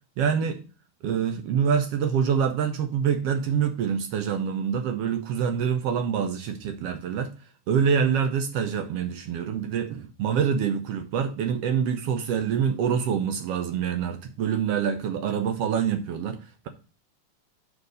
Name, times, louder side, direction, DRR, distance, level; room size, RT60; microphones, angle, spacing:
voice 1, 0.2-0.6 1.0-7.3 7.7-16.4, right 7 dB, 75° right, 1.4 m, -26 dB
6.7 x 4.7 x 6.4 m
omnidirectional pair, 3.6 m